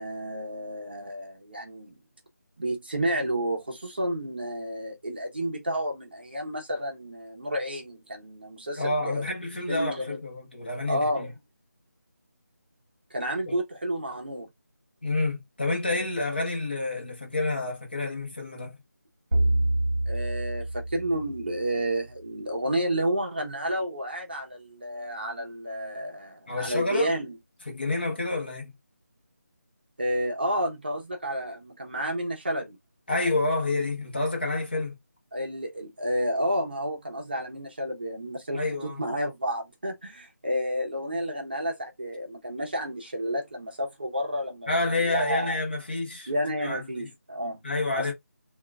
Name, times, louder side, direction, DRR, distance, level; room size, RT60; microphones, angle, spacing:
voice 1, 0.0-2.0 2.6-9.2 9.7-10.2 10.9-11.3 13.1-14.5 20.1-27.3 30.0-32.8 35.3-44.7 45.0-45.6 46.3-47.6 47.9-48.1, equal, 35° right, 0.8 m, -31 dB
voice 2, 8.8-11.3 13.5-13.6 15.0-18.8 26.5-27.1 27.7-28.7 33.1-35.0 38.5-39.0 44.7-46.3 46.6-47.1 47.6-48.1, left 2 dB, 35° left, 0.9 m, -29 dB
sound 1, 19.3-21.8, right 1 dB, 50° right, 1.1 m, -27 dB
3.6 x 2.4 x 2.2 m
figure-of-eight pair, 180°, 9 cm